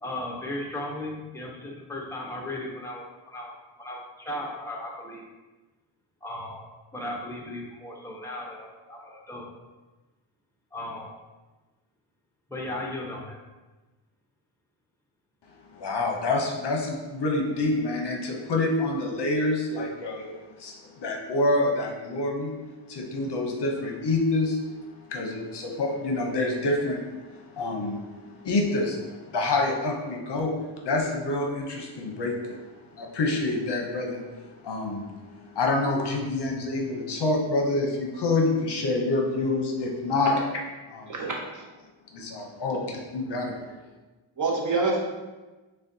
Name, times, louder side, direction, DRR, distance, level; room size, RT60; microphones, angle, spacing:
voice 1, 0.0-5.2 6.2-6.6 6.9-9.5 10.7-11.2 12.5-13.4, left 1 dB, 5° left, -2 dB, 0.6 m, -36 dB
voice 2, 15.7-20.3 20.6-22.5 22.9-24.8 25.1-30.5 30.8-32.7 32.9-35.1 35.4-40.4 40.9-41.1 42.1-43.8, left 2 dB, 55° left, 0 dB, 0.7 m, -27 dB
voice 3, 41.1-41.6 42.4-42.5 44.4-45.0, right 3 dB, 40° right, -2 dB, 0.7 m, -27 dB
6.2 x 2.2 x 2.6 m, 1.2 s
wide cardioid pair, 125°, 48 cm